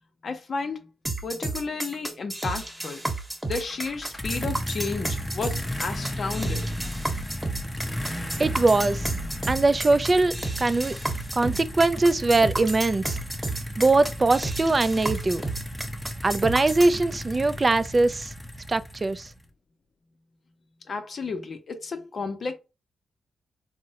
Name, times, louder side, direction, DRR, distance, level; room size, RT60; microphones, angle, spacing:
voice 1, 0.2-0.9 1.2-3.1 3.4-6.7 20.9-22.5, left 4 dB, 60° left, 0.6 m, -32 dB
sound 1, 1.1-17.0, right 2 dB, 20° right, 1.0 m, -32 dB
sound 2, 3.5-19.5, left 1 dB, 15° left, 0.6 m, -35 dB
voice 2, 8.4-9.1 9.5-11.0 11.3-13.2 13.8-15.4 16.2-18.3 18.7-19.3, right 3 dB, 35° right, 0.3 m, -22 dB
3.6 x 2.1 x 2.8 m
cardioid pair, 55°, 0 cm